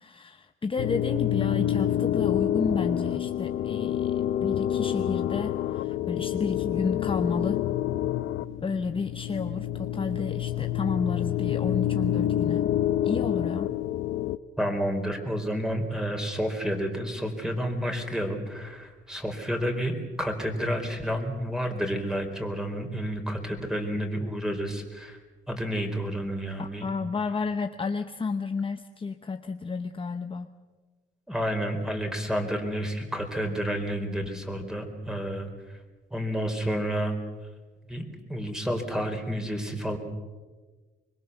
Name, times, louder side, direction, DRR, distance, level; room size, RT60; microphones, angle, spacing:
voice 1, 0.0-7.6 8.6-12.7 13.0-13.7 26.6-30.5, left 4 dB, 25° left, 8 dB, 0.9 m, -31 dB
sound 1, 0.8-14.4, left 11 dB, 80° left, 0.7 m, -28 dB
voice 2, 14.6-25.2 25.5-26.9 31.3-35.5 36.1-37.1 37.9-40.0, equal, 5° right, 4 dB, 4.4 m, -30 dB
25.0 x 22.0 x 7.0 m, 1.3 s
cardioid pair, 90°, 20 cm